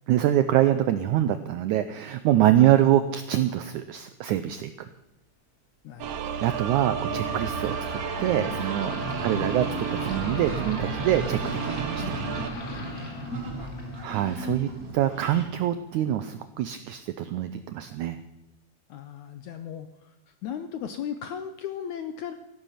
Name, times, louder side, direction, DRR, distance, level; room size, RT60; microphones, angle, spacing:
voice 1, 0.1-4.7 6.4-7.8 8.2-12.2 14.0-18.2, right 12 dB, 85° right, 11 dB, 1.7 m, -25 dB
voice 2, 5.8-6.4 9.2-9.4 13.5-14.2 18.9-22.3, left 8 dB, 75° left, 9 dB, 1.8 m, -37 dB
sound 1, 6.0-12.5, right 7 dB, 70° right, 1.5 m, -32 dB
sound 2, 6.2-15.6, equal, 30° left, 1.9 m, -35 dB
sound 3, 7.1-15.4, right 2 dB, 35° right, 5.5 m, -46 dB
14.5 x 12.0 x 5.8 m, 1.0 s
omnidirectional pair, 4.3 m